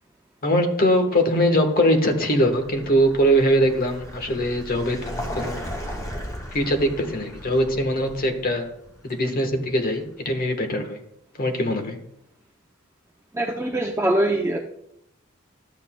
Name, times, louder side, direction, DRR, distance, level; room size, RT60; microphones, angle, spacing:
voice 1, 0.4-5.7 6.5-8.7 9.0-11.0 11.3-12.0, equal, 45° left, 5 dB, 1.2 m, -22 dB
Vehicle, 1.7-10.5, equal, 20° left, 1.6 m, -37 dB
voice 2, 13.3-14.6, right 1 dB, 15° right, 1 dB, 0.5 m, -23 dB
13.0 x 8.1 x 2.2 m, 0.76 s
head